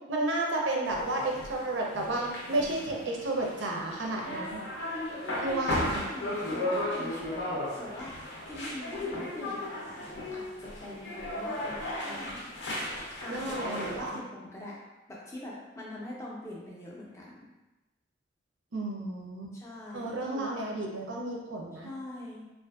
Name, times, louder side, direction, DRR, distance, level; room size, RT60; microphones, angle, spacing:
voice 1, 0.1-4.6 5.4-6.0 13.3-14.2 18.7-19.5 19.9-21.9, right 2 dB, 85° right, 0 dB, 0.5 m, -32 dB
sound 1, 0.9-14.1, left 1 dB, 65° left, 0.6 m, -35 dB
voice 2, 5.2-8.2 8.5-12.5 13.2-14.8 15.1-17.5 19.5-20.7 21.8-22.4, left 1 dB, 15° left, -5 dB, 0.4 m, -43 dB
2.5 x 2.4 x 2.3 m, 1.1 s
head